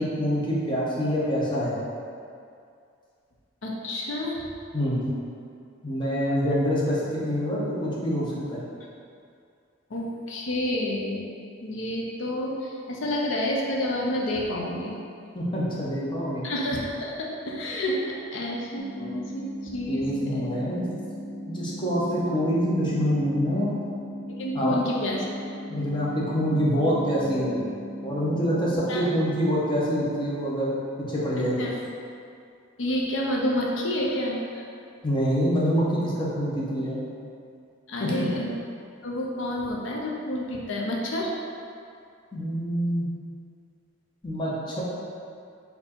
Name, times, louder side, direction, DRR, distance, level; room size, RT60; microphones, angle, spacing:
voice 1, 0.0-1.8 4.7-5.0 5.8-8.6 15.3-16.4 19.9-20.8 21.5-23.7 24.5-24.7 25.7-27.6 28.0-30.8 31.1-31.7 35.0-37.0 38.0-38.1 42.3-43.1 44.2-44.8, equal, 25° left, -7 dB, 0.9 m, -26 dB
voice 2, 3.6-4.4 9.9-11.3 11.6-15.0 16.4-20.6 24.4-25.2 28.9-29.0 31.6-31.8 32.8-34.6 37.9-38.5 39.0-41.3, left 1 dB, 65° left, -2 dB, 0.5 m, -29 dB
sound 1, 18.8-28.8, equal, 60° right, 0.4 m, -38 dB
4.3 x 2.7 x 4.3 m, 2.4 s
head